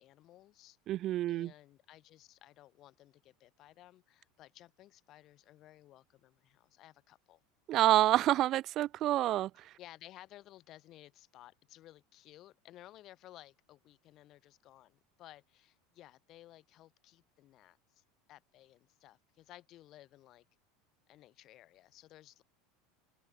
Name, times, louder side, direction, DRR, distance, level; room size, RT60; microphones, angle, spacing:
voice 1, 0.0-0.8 1.3-7.4 9.8-18.0 18.3-20.5 21.1-22.4, left 14 dB, 35° left, 7.9 m, -57 dB
voice 2, 0.9-1.5 7.7-9.5, right 14 dB, 35° right, 0.5 m, -27 dB
supercardioid pair, 170°, 0 cm